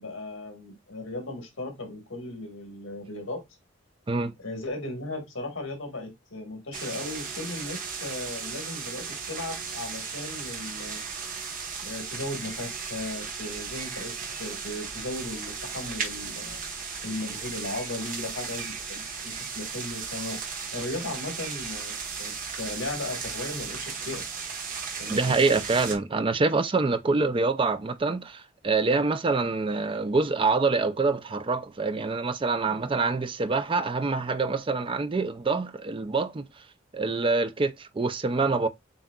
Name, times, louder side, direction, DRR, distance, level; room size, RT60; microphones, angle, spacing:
voice 1, 0.0-3.4 4.4-11.0 11.8-16.6 17.0-20.4 20.7-24.2 25.0-25.6, left 2 dB, 80° left, 1.8 m, -36 dB
sound 1, 6.7-26.0, right 5 dB, 45° right, 1.1 m, -36 dB
voice 2, 25.1-36.5 36.9-38.7, right 3 dB, 25° right, 0.4 m, -26 dB
7.2 x 2.8 x 2.3 m
head